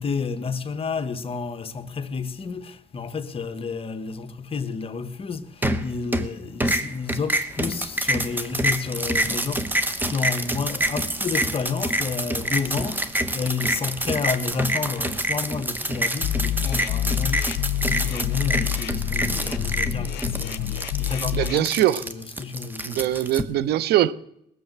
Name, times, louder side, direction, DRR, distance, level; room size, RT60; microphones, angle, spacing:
voice 1, 0.0-17.6 17.8-21.7 22.0-23.2, left 5 dB, 35° left, 1.1 m, -30 dB
sound 1, 5.6-6.3 6.6-23.4, right 1 dB, 10° right, 1.2 m, -27 dB
sound 2, 16.2-21.6, left 12 dB, 80° left, 0.6 m, -27 dB
voice 2, 21.3-22.0 22.9-24.1, right 13 dB, 70° right, 0.8 m, -22 dB
19.5 x 7.0 x 7.9 m
cardioid pair, 110°, 17 cm